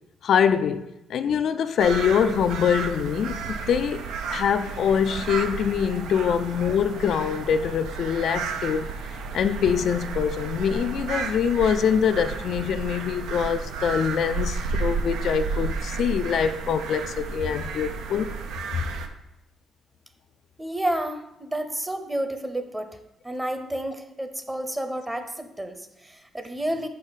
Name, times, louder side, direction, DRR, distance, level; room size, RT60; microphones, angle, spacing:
voice 1, 0.2-8.9 9.3-18.3, left 7 dB, 65° left, 0.3 m, -24 dB
sound 1, 1.8-19.1, right 4 dB, 90° right, 0.5 m, -32 dB
voice 2, 20.6-23.0 23.2-26.9, right 1 dB, 15° right, 0.7 m, -30 dB
5.3 x 5.2 x 4.0 m
cardioid pair, 90°, 0 cm